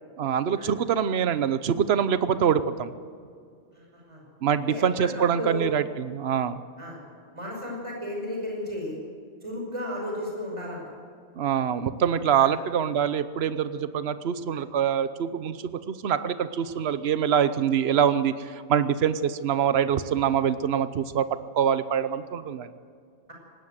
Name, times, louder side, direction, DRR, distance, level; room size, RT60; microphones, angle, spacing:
voice 1, 0.2-2.9 4.4-6.6 11.4-22.7, right 8 dB, 65° right, 13 dB, 1.1 m, -25 dB
voice 2, 3.7-4.2 4.6-5.7 6.8-7.0 7.3-9.0 9.4-10.9 12.4-12.5, left 1 dB, 25° right, -1 dB, 5.7 m, -34 dB
19.0 x 17.0 x 8.0 m, 2.2 s
omnidirectional pair, 1.2 m